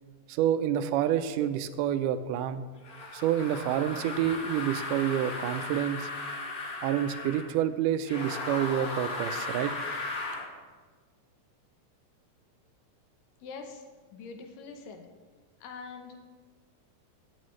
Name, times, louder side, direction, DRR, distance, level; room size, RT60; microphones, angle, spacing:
voice 1, 0.3-2.7 3.1-6.1 6.8-9.7, right 10 dB, 80° right, 11 dB, 2.0 m, -28 dB
sound 1, 2.8-7.5 8.0-10.5, left 3 dB, 50° left, 1.1 m, -36 dB
voice 2, 13.4-13.8 14.1-15.1 15.6-16.2, left 4 dB, 80° left, 5 dB, 2.5 m, -43 dB
16.5 x 8.8 x 3.1 m, 1.4 s
omnidirectional pair, 3.9 m